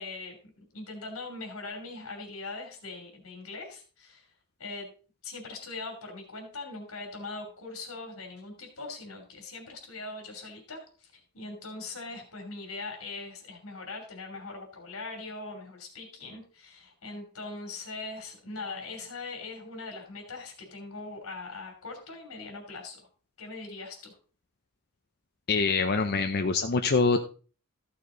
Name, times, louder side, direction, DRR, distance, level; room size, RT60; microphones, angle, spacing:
voice 1, 0.0-4.3 4.6-4.9 5.2-23.1 23.4-24.2, left 3 dB, 90° left, 2 dB, 2.9 m, -41 dB
voice 2, 25.5-27.2, left 4 dB, 50° left, 6 dB, 0.6 m, -25 dB
14.0 x 6.7 x 3.8 m, 0.38 s
head